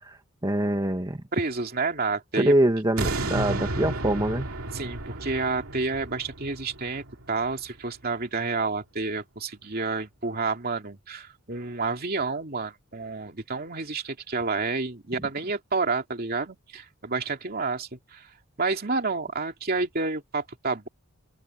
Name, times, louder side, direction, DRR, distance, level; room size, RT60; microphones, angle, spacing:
voice 1, 0.0-1.2 2.4-4.5, right 1 dB, 20° right, 1.4 m, -24 dB
voice 2, 1.3-2.5 4.7-18.3 18.6-20.9, right 3 dB, 45° right, 2.6 m, -29 dB
sound 1, 3.0-8.1 8.5-8.6, right 2 dB, 85° right, 2.8 m, -33 dB
open air
head